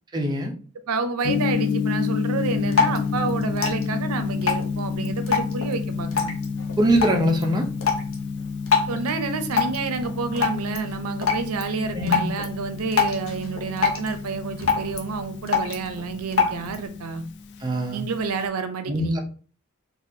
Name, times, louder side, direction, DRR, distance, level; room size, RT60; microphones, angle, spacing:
voice 1, 0.1-0.5 6.8-7.7 11.9-12.3 17.6-18.1 18.9-19.2, right 1 dB, 20° right, 0.5 m, -22 dB
voice 2, 0.9-6.3 8.9-17.2 17.9-19.2, right 4 dB, 85° right, 0.5 m, -29 dB
Gong, 1.2-18.5, left 5 dB, 55° left, 0.3 m, -30 dB
Drip, 2.4-16.9, left 5 dB, 70° left, 0.7 m, -28 dB
4.0 x 2.4 x 2.6 m
head